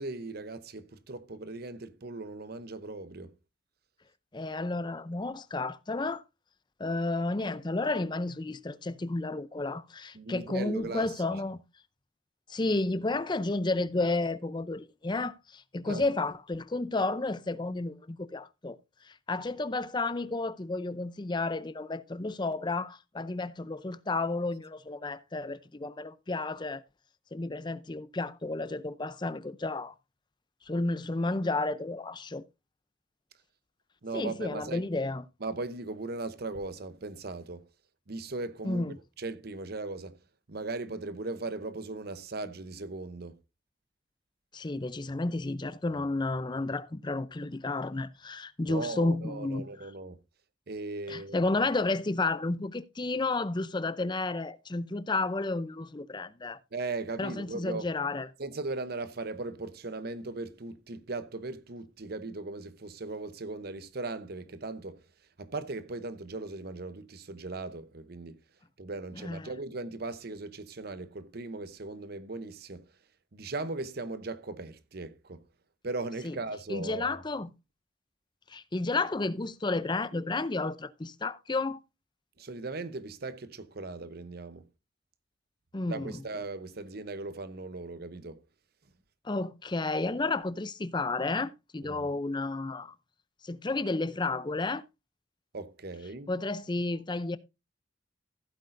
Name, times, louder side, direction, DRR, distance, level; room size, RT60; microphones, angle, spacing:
voice 1, 0.0-3.3 10.1-11.1 15.9-16.0 34.0-34.8 35.4-37.6 38.1-40.1 40.5-43.4 48.6-50.2 50.7-51.5 56.7-57.8 58.4-65.0 65.4-68.4 68.8-72.8 73.3-75.4 75.8-77.2 82.4-84.6 85.9-88.4 91.8-92.1 95.5-96.3, right 3 dB, 50° right, 0.8 m, -38 dB
voice 2, 4.3-6.2 6.8-11.6 12.5-18.8 19.0-26.8 27.3-29.9 30.7-32.4 34.1-35.2 38.6-39.0 44.5-49.9 51.1-56.6 57.2-58.3 69.2-69.5 76.2-76.4 76.7-77.5 78.5-81.8 85.7-86.2 89.2-92.9 93.4-94.8 96.3-97.4, left 2 dB, 25° left, 0.5 m, -32 dB
15.5 x 8.3 x 2.6 m
head